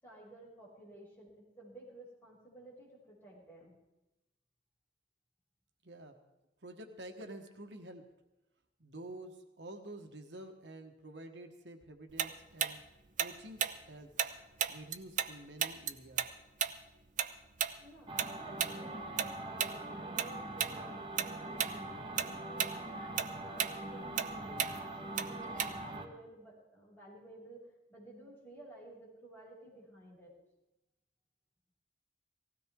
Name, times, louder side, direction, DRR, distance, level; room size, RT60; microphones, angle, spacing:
voice 1, 0.0-3.8 17.8-27.6 27.9-30.3, right 1 dB, 10° left, -6 dB, 6.5 m, -54 dB
voice 2, 5.8-6.2 6.6-8.1 8.8-12.8 13.2-14.2 14.7-16.3, right 1 dB, 80° right, 5 dB, 1.3 m, -49 dB
Tick-tock, 12.2-15.3 15.6-20.3 20.6-20.8 21.2-21.8 22.0-26.0, right 9 dB, 45° right, 0.7 m, -34 dB
sound 1, 18.1-26.1, right 2 dB, 30° right, 1.6 m, -43 dB
18.5 x 16.0 x 3.7 m, 0.96 s
head